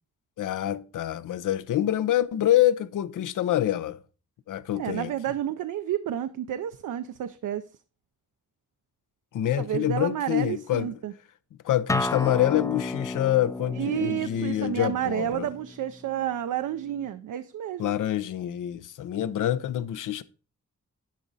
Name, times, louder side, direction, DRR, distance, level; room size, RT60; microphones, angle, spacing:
voice 1, 0.4-4.0 4.5-5.1 9.3-10.9 11.6-15.5 17.8-20.2, left 12 dB, 90° left, 0.6 m, -26 dB
voice 2, 4.8-7.6 9.6-11.1 13.7-17.9, right 11 dB, 85° right, 0.5 m, -30 dB
Acoustic guitar, 11.9-17.1, left 2 dB, 10° left, 0.3 m, -34 dB
10.5 x 5.0 x 4.0 m
cardioid pair, 75°, 30 cm